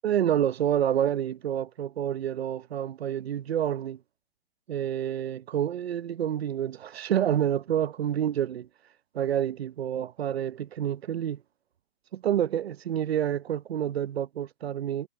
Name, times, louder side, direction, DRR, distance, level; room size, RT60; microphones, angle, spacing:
voice 1, 0.0-4.0 4.7-8.7 9.1-11.4 12.1-15.1, right 10 dB, 85° right, 0.9 m, -28 dB
hypercardioid pair, 155°, 30 cm